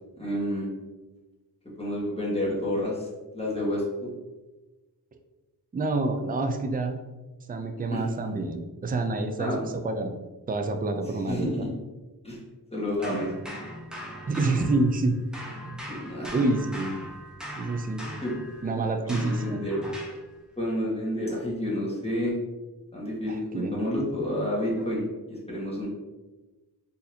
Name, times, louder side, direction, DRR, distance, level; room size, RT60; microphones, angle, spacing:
voice 1, 0.2-0.7 1.8-3.1 3.3-4.1 7.9-8.1 9.4-9.7 11.3-11.6 12.2-12.4 12.7-13.3 15.9-16.3 18.2-18.3 19.0-19.8 20.6-22.3 22.9-25.9, left 1 dB, 15° left, -6 dB, 1.4 m, -29 dB
voice 2, 5.7-7.0 7.5-10.1 10.5-11.5 14.3-15.2 15.7-15.8 16.3-16.9 17.6-18.1 18.6-19.6 23.3-23.8, right 2 dB, 25° right, 6 dB, 0.4 m, -27 dB
sound 1, 13.0-15.1 15.3-20.2, equal, ahead, 0.8 m, -40 dB
4.0 x 2.7 x 2.7 m, 1.2 s
wide cardioid pair, 60°, 41 cm